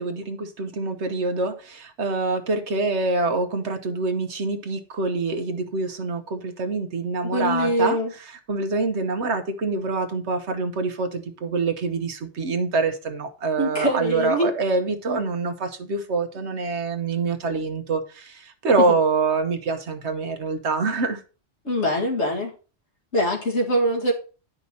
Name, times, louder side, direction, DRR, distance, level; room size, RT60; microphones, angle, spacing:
voice 1, 0.0-8.0 8.5-21.2, right 3 dB, 70° right, 7 dB, 1.4 m, -25 dB
voice 2, 7.2-8.1 13.6-14.5 21.6-22.5 23.1-24.1, equal, 70° left, 1 dB, 2.2 m, -23 dB
10.0 x 5.3 x 4.1 m, 0.35 s
omnidirectional pair, 1.2 m